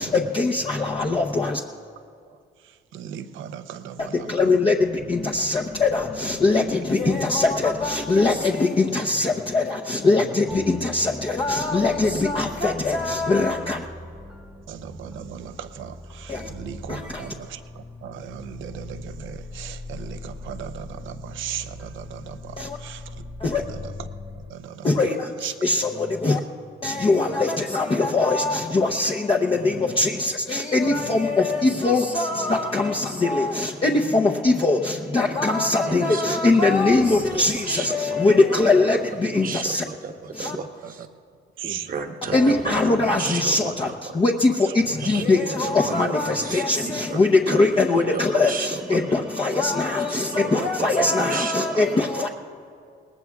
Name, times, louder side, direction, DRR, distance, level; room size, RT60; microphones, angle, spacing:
voice 1, 0.0-1.6 4.3-13.9 16.3-16.5 16.9-17.3 22.6-22.8 23.4-23.6 24.8-26.4 26.8-39.8 40.3-40.6 42.3-52.3, left 3 dB, 25° left, 0 dB, 0.8 m, -22 dB
voice 2, 2.3-4.6 6.4-6.5 7.1-7.2 14.6-23.2 23.5-24.1 24.3-25.5 30.2-30.3 31.1-31.4 40.8-40.9 41.6-41.9 42.5-42.6 44.7-44.8 45.0-45.3 45.5-45.6, right 9 dB, 80° right, 10 dB, 0.7 m, -38 dB
sound 1, 9.6-24.5, left 2 dB, 5° right, 0.9 m, -41 dB
voice 3, 35.9-36.5 36.9-38.0 39.3-41.1 41.6-44.2 45.0-47.7 47.9-49.6 50.1-52.3, right 5 dB, 45° right, 5 dB, 1.1 m, -34 dB
23.0 x 18.5 x 2.4 m, 2.3 s
cardioid pair, 90°, 20 cm